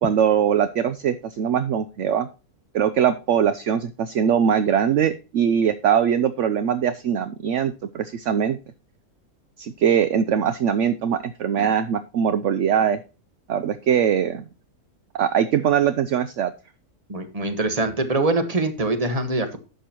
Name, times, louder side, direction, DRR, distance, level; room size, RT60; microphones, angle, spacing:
voice 1, 0.0-2.3 2.7-8.6 9.6-13.0 13.5-14.4 15.1-16.5, right 8 dB, 60° right, 13 dB, 0.9 m, -21 dB
voice 2, 17.1-19.6, right 2 dB, 25° right, 8 dB, 1.4 m, -23 dB
11.5 x 7.9 x 2.9 m, 0.32 s
omnidirectional pair, 1.6 m